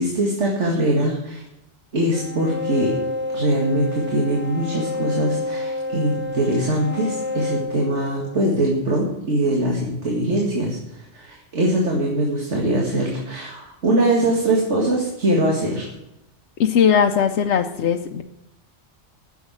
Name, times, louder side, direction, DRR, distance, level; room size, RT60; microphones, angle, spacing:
voice 1, 0.0-1.4 1.9-3.0 3.3-15.9, right 1 dB, 80° right, -1 dB, 2.3 m, -22 dB
sound 1, 2.1-8.6, left 2 dB, 10° right, 1.2 m, -29 dB
voice 2, 16.6-18.2, left 7 dB, 75° left, 4 dB, 1.0 m, -19 dB
10.5 x 7.2 x 8.9 m, 0.90 s
omnidirectional pair, 1.2 m